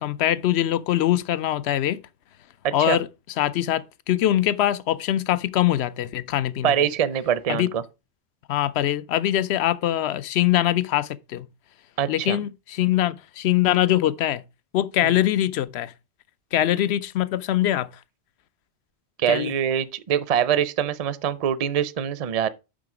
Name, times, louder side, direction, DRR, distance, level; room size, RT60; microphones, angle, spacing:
voice 1, 0.0-2.0 2.7-3.1 3.4-6.9 7.5-7.7 8.5-11.5 12.1-14.4 14.7-15.9 16.5-17.9 19.3-19.5, left 13 dB, 75° left, 0.8 m, -23 dB
voice 2, 2.6-3.0 6.6-7.8 12.0-12.4 15.0-15.2 19.2-22.5, right 9 dB, 45° right, 0.6 m, -24 dB
7.5 x 5.8 x 4.8 m
omnidirectional pair, 1.1 m